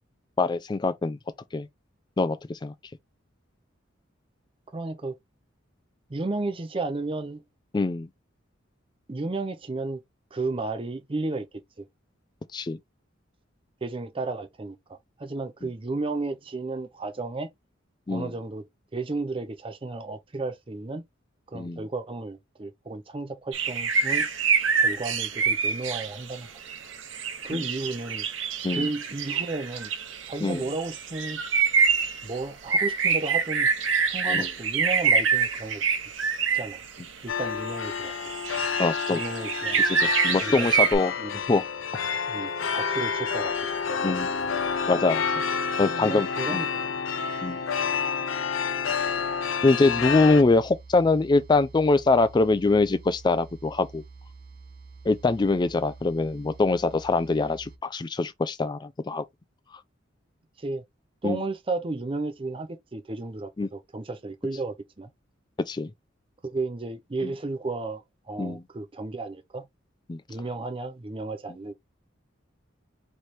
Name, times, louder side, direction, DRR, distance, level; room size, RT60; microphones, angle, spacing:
voice 1, 0.4-1.2 1.5-1.7 2.2-2.7 7.7-8.1 12.5-12.8 18.1-18.3 21.5-21.8 27.5-27.6 28.6-28.9 30.4-30.6 34.3-34.5 38.8-39.2 39.8-41.1 41.5-41.6 44.0-44.3 44.9-45.2 45.8-46.6 47.4-47.6 49.6-54.0 55.1-59.2 61.2-61.4 63.6-63.7 65.7-65.9 68.4-68.6 70.1-70.2, left 3 dB, 20° left, 0.3 m, -23 dB
voice 2, 4.7-5.1 6.1-7.4 9.1-10.0 10.3-11.5 11.8-11.9 13.8-14.8 15.2-17.5 18.1-18.7 18.9-21.0 21.5-24.3 24.7-26.5 27.4-28.2 28.7-29.9 30.3-31.4 32.2-33.7 34.1-35.8 36.5-36.8 37.2-38.1 39.1-39.8 40.4-40.7 41.2-41.4 42.3-43.7 45.7-46.9 60.6-60.8 61.2-65.1 66.4-69.7 70.3-71.7, right 3 dB, 25° right, 0.6 m, -33 dB
sound 1, 23.5-37.1 37.4-41.0, right 5 dB, 70° right, 1.0 m, -26 dB
sound 2, 37.3-50.4, left 6 dB, 85° left, 0.6 m, -29 dB
sound 3, 49.8-57.8, right 4 dB, 50° right, 0.9 m, -47 dB
3.2 x 3.1 x 4.2 m
head